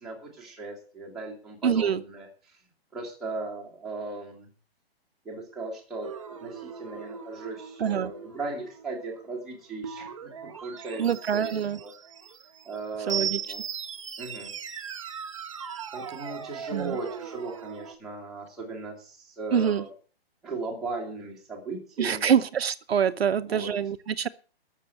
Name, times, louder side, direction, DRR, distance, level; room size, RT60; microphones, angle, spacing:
voice 1, 0.0-2.3 2.9-4.5 5.3-6.1 6.4-10.3 10.6-11.0 11.3-11.9 12.6-13.6 14.2-14.5 15.9-19.9 20.4-22.4 23.2-23.7, right 3 dB, ahead, 1.9 m, -37 dB
voice 2, 1.6-2.0 7.8-8.1 11.0-11.8 13.1-13.4 16.7-17.0 19.5-19.8 22.0-24.3, right 8 dB, 75° right, 0.9 m, -25 dB
sound 1, 6.0-17.9, right 7 dB, 30° right, 0.8 m, -38 dB
13.5 x 6.8 x 8.2 m
hypercardioid pair, 175°, 31 cm